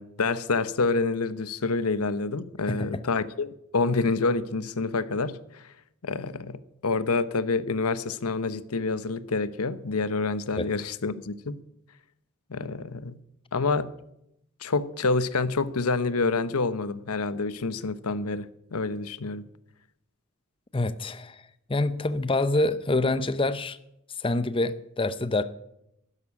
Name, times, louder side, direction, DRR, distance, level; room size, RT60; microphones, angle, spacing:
voice 1, 0.0-5.7 6.0-11.6 12.5-13.2 13.5-13.9 14.6-19.4, left 3 dB, 90° left, 1.0 m, -27 dB
voice 2, 2.7-3.0 10.6-10.7 20.7-21.4 21.7-23.8 24.2-25.4, left 2 dB, 25° left, 0.7 m, -26 dB
12.5 x 11.0 x 9.9 m
head